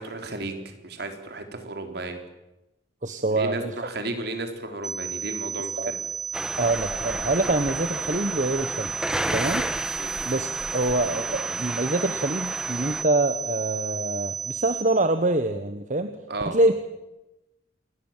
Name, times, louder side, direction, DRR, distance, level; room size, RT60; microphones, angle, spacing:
voice 1, 0.0-2.2 3.3-6.0 10.0-10.1 16.3-16.6, right 2 dB, 60° right, 6 dB, 4.1 m, -34 dB
voice 2, 3.0-3.7 5.6-5.9 6.6-8.9 9.3-9.7 10.2-16.1 16.4-16.7, right 2 dB, 45° right, 9 dB, 1.3 m, -25 dB
sound 1, 4.8-14.8, right 7 dB, 20° right, 5.1 m, -33 dB
sound 2, 6.3-13.0, right 1 dB, 5° right, 1.2 m, -32 dB
28.0 x 22.0 x 7.6 m, 0.97 s
head